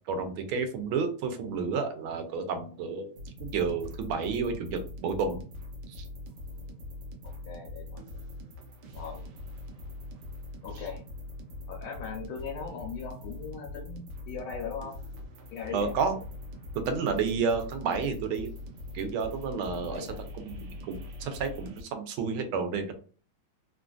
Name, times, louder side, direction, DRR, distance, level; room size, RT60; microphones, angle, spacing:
voice 1, 0.1-3.1 3.4-5.4 5.9-6.0 15.7-16.1 16.8-18.5 18.9-20.1 20.4-20.6 20.9-22.9, right 5 dB, 90° right, 6 dB, 1.5 m, -30 dB
sound 1, 3.2-21.8, left 2 dB, 70° right, 1.1 m, -42 dB
voice 2, 7.2-8.0 8.9-9.2 10.6-11.0 11.7-15.0 15.5-15.9 19.9-20.2, left 6 dB, 80° left, -1 dB, 1.5 m, -39 dB
3.6 x 2.5 x 2.3 m, 0.40 s
omnidirectional pair, 2.2 m